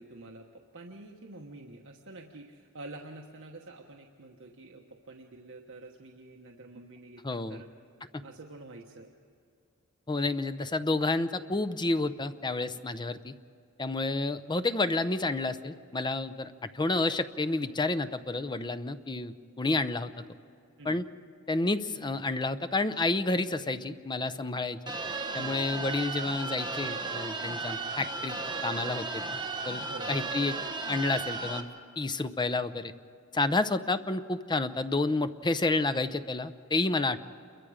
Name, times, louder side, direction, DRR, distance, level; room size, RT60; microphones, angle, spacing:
voice 1, 0.0-7.7 8.2-9.1 12.7-12.8 20.8-21.0 25.3-25.6 29.8-30.2, right 2 dB, 65° right, 0 dB, 1.3 m, -47 dB
voice 2, 7.2-7.6 8.1-8.2 10.1-13.3 13.8-20.1 20.8-21.0 21.5-24.8 25.3-28.4 28.6-29.4 29.6-29.8 30.1-30.6 30.9-32.9 33.3-37.2, left 2 dB, 20° left, 12 dB, 0.7 m, -30 dB
sound 1, 24.9-31.6, right 3 dB, 20° right, 1.4 m, -35 dB
28.5 x 22.5 x 5.0 m, 2.5 s
head